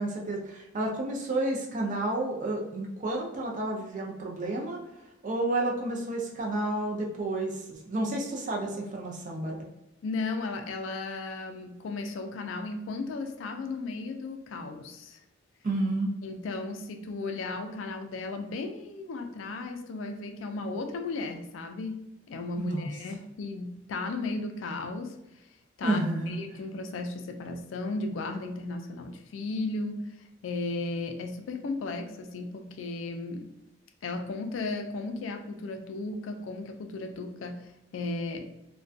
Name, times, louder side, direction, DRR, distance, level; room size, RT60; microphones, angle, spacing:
voice 1, 0.0-4.8 5.2-9.6 15.6-16.1 22.6-22.9 25.8-26.4, right 2 dB, 40° right, 0 dB, 0.4 m, -30 dB
voice 2, 10.0-15.2 16.2-25.2 25.8-26.0 26.3-30.1 30.4-33.5 34.0-38.5, left 3 dB, 75° left, 5 dB, 0.3 m, -35 dB
2.3 x 2.2 x 2.5 m, 0.89 s
head